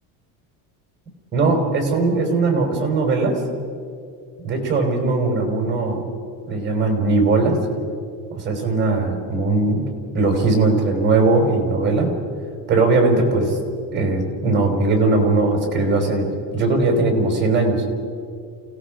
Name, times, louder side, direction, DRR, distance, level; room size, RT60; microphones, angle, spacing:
voice 1, 1.3-3.4 4.4-6.0 6.5-7.6 8.3-9.9 10.1-12.1 12.7-13.6 13.9-17.8, right 3 dB, 30° right, 3 dB, 4.6 m, -19 dB
29.0 x 17.5 x 5.1 m, 2.4 s
cardioid pair, 150°, 37 cm